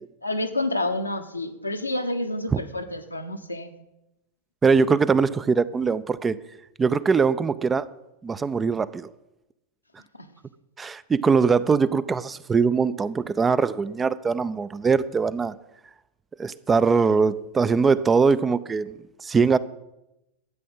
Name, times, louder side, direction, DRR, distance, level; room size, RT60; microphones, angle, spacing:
voice 1, 0.2-3.7 10.1-10.3, left 1 dB, 85° left, 1.2 m, -29 dB
voice 2, 4.6-6.4 6.8-7.8 8.2-9.1 10.8-15.5 16.4-19.6, right 5 dB, 15° right, 0.5 m, -22 dB
12.5 x 8.5 x 7.9 m
figure-of-eight pair, 90°, 0 cm